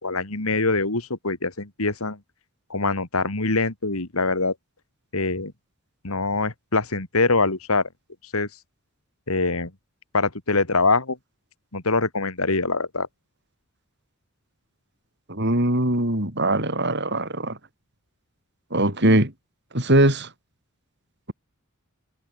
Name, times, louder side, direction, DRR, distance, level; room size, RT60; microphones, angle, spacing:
voice 1, 0.0-2.2 2.7-4.5 5.1-5.5 6.0-7.9 8.3-8.5 9.3-9.7 10.1-11.2 11.7-13.1, left 3 dB, 75° left, 2.9 m, -24 dB
voice 2, 15.3-17.6 18.7-19.3 19.7-20.3, right 1 dB, 50° right, 6.7 m, -21 dB
head